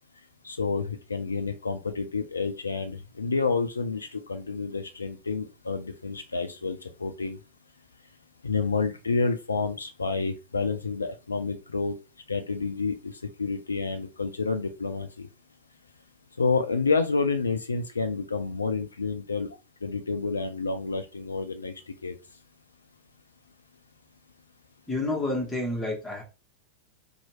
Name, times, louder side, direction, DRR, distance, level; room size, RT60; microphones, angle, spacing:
voice 1, 0.4-7.4 8.4-12.0 12.3-13.1 13.4-15.3 16.4-19.5 19.8-21.7 22.0-22.1, left 4 dB, 75° left, 0.3 m, -29 dB
voice 2, 24.9-26.2, left 2 dB, 10° left, 0.9 m, -29 dB
2.7 x 2.2 x 2.9 m
figure-of-eight pair, 90°, 0 cm